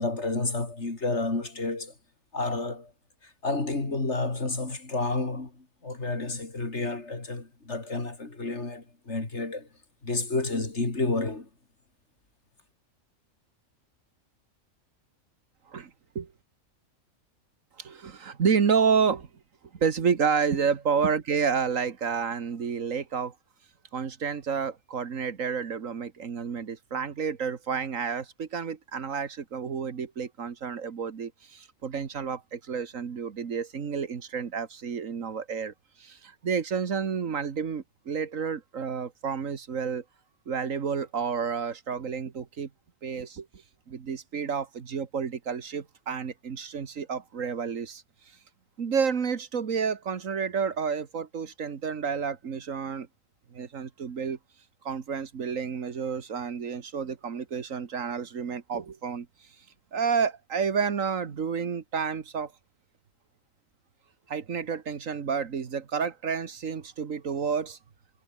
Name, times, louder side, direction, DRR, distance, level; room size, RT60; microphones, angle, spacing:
voice 1, 0.0-1.9 2.3-2.9 3.4-9.7 10.0-11.5, left 3 dB, 55° left, 3.8 m, -30 dB
voice 2, 15.7-16.3 17.8-19.3 19.7-23.3 23.9-40.0 40.5-42.7 43.0-43.6 43.9-48.0 48.8-53.1 53.5-54.4 54.8-59.3 59.9-62.5 64.3-67.8, right 6 dB, 70° right, 1.8 m, -30 dB
omnidirectional pair, 1.4 m